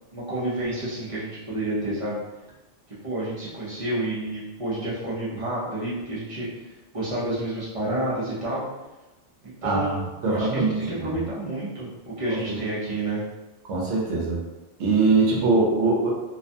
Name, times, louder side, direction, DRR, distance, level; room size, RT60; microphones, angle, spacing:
voice 1, 0.1-2.2 2.9-6.5 6.9-8.6 9.4-10.0 10.2-13.2, right 1 dB, 40° right, -8 dB, 0.5 m, -29 dB
voice 2, 9.6-11.2 12.3-12.6 13.7-14.4 14.8-16.1, right 3 dB, 75° right, -2 dB, 0.9 m, -23 dB
2.5 x 2.2 x 2.5 m, 1.1 s
omnidirectional pair, 1.2 m